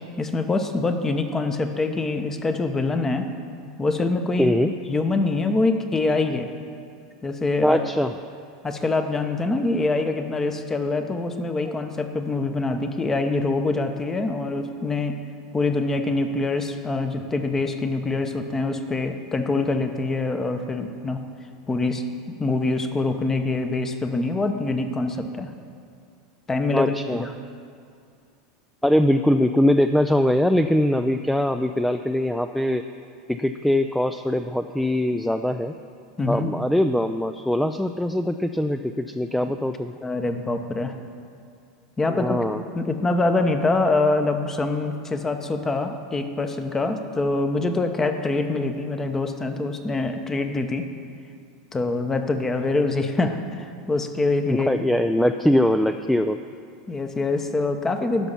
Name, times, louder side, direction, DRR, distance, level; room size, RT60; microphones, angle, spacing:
voice 1, 0.2-3.3 3.6-4.6 4.9-6.5 7.2-7.8 8.6-15.2 15.5-21.2 21.7-25.5 26.5-27.3 36.2-36.5 39.4-39.5 40.0-41.0 42.0-42.4 42.7-50.9 51.7-54.7 56.9-58.3, left 3 dB, 20° left, 7 dB, 0.9 m, -25 dB
voice 2, 4.4-4.7 7.6-8.1 11.6-11.7 26.7-27.2 28.8-32.8 33.3-35.7 36.3-39.9 42.1-42.6 54.5-56.4, left 1 dB, 5° left, 8 dB, 0.3 m, -22 dB
11.5 x 6.0 x 5.7 m, 2.3 s
hypercardioid pair, 85°, 2 cm